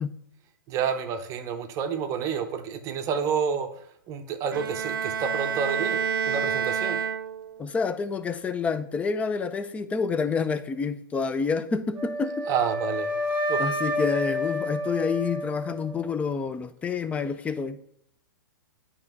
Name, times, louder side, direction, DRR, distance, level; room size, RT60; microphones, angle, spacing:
voice 1, 0.7-3.7 4.1-6.0 6.3-7.0 12.5-13.6, right 7 dB, 30° right, 7 dB, 0.6 m, -29 dB
Bowed string instrument, 4.5-7.7, right 7 dB, 75° right, 0.5 m, -28 dB
voice 2, 7.6-12.5 13.6-17.9, left 5 dB, 10° left, 12 dB, 0.4 m, -28 dB
Wind instrument woodwind instrument, 12.0-16.1, equal, 10° right, 1.2 m, -29 dB
8.8 x 2.9 x 4.6 m, 0.72 s
hypercardioid pair, 115°, 11 cm